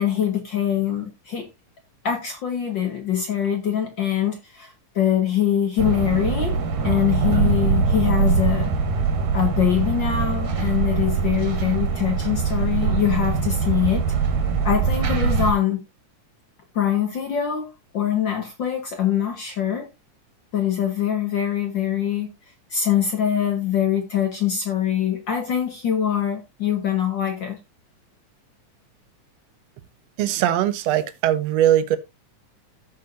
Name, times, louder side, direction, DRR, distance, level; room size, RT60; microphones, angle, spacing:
voice 1, 0.0-1.5 2.0-8.7 9.3-14.1 14.6-15.8 16.7-17.7 17.9-19.9 20.5-22.3 22.7-27.6, left 9 dB, 60° left, 1.2 m, -23 dB
sound 1, 5.8-15.5, right 5 dB, 90° right, 3.2 m, -22 dB
voice 2, 30.2-32.0, right 11 dB, 70° right, 1.6 m, -20 dB
16.5 x 5.7 x 2.6 m
omnidirectional pair, 3.7 m